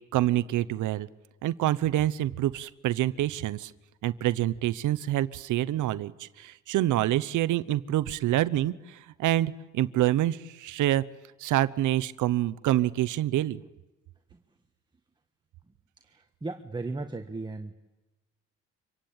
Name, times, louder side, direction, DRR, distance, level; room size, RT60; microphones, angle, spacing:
voice 1, 0.1-1.1 1.4-3.7 4.0-11.0 11.4-13.6, right 14 dB, 80° right, 15 dB, 0.9 m, -26 dB
voice 2, 16.0-17.7, right 3 dB, 15° right, 7 dB, 1.5 m, -36 dB
25.5 x 24.0 x 8.9 m, 1.1 s
cardioid pair, 90°, 30 cm